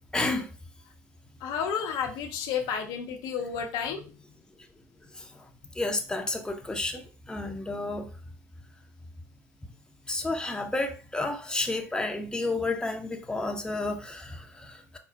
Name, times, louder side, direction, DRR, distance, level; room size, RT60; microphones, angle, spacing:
voice 1, 0.1-0.5 5.1-5.4 5.7-8.1 10.1-15.0, left 2 dB, 10° left, 0.7 m, -31 dB
voice 2, 1.4-4.1, left 7 dB, 65° left, 0.7 m, -31 dB
4.3 x 2.0 x 3.8 m
hypercardioid pair, 65°, 8 cm